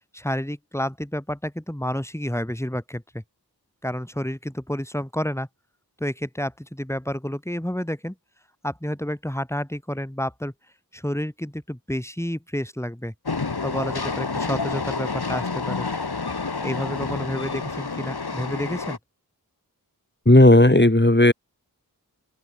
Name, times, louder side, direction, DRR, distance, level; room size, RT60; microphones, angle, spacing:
voice 1, 0.1-3.2 3.8-5.5 6.0-8.1 8.6-10.5 10.9-13.1 13.6-15.9 16.6-19.0, equal, 5° left, 4.9 m, -30 dB
Train, 13.3-19.0, left 4 dB, 75° left, 2.9 m, -29 dB
voice 2, 20.3-21.3, left 1 dB, 30° left, 6.0 m, -13 dB
open air
wide cardioid pair, 40°, 38 cm